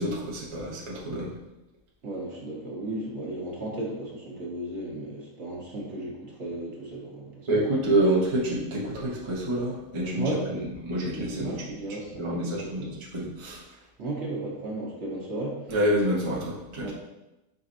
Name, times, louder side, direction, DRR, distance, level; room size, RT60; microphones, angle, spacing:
voice 1, 0.0-1.3 7.5-10.3 10.8-11.6 12.2-13.6 15.7-16.9, right 1 dB, 30° right, -5 dB, 0.7 m, -27 dB
voice 2, 2.0-7.6 10.2-10.6 11.4-12.9 14.0-15.6 16.8-16.9, right 2 dB, 55° right, -3 dB, 1.2 m, -35 dB
5.1 x 4.0 x 2.5 m, 0.98 s
omnidirectional pair, 1.5 m